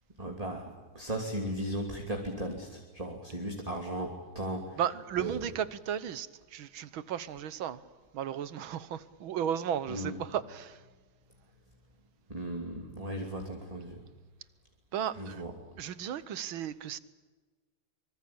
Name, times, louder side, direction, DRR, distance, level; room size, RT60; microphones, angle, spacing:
voice 1, 0.2-0.7 0.9-4.8 5.2-5.4 9.9-10.2 12.3-14.0 15.2-15.5, right 1 dB, 15° right, 3.0 m, -36 dB
voice 2, 4.8-7.8 8.1-10.8 14.9-15.4 15.8-17.0, right 9 dB, 75° right, 1.8 m, -35 dB
25.0 x 24.0 x 8.7 m
omnidirectional pair, 2.3 m